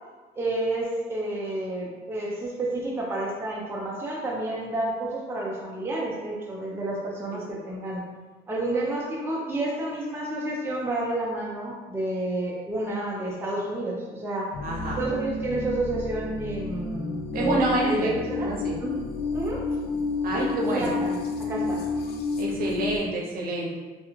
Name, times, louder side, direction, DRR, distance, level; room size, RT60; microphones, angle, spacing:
voice 1, 0.4-8.1 8.5-14.5 15.0-18.5 18.8-19.0 19.3-19.7 20.3-21.8, right 2 dB, 15° right, -4 dB, 0.5 m, -30 dB
voice 2, 7.3-7.6 14.6-15.0 17.3-18.8 20.2-21.0 22.4-23.8, right 1 dB, 60° right, -3 dB, 0.8 m, -28 dB
sound 1, 14.5-23.0, left 3 dB, 70° left, 0.4 m, -30 dB
2.4 x 2.2 x 3.0 m, 1.3 s
cardioid pair, 110°, 17 cm